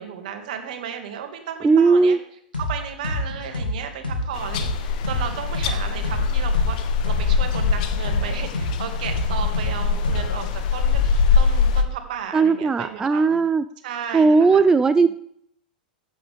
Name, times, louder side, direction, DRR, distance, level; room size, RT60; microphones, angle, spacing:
voice 1, 0.0-2.2 2.5-13.4 13.8-14.7 15.0-15.1, right 8 dB, 60° right, 5 dB, 2.1 m, -34 dB
voice 2, 1.6-2.2 12.3-13.6 14.1-15.1, right 4 dB, 15° right, 12 dB, 0.4 m, -17 dB
sound 1, 2.5-2.7 3.0-6.7 7.0-10.5, left 2 dB, 85° left, 2.4 m, -27 dB
sound 2, 4.3-11.8, left 5 dB, 55° left, 1.1 m, -22 dB
14.5 x 8.7 x 3.6 m, 0.69 s
figure-of-eight pair, 95°, 5 cm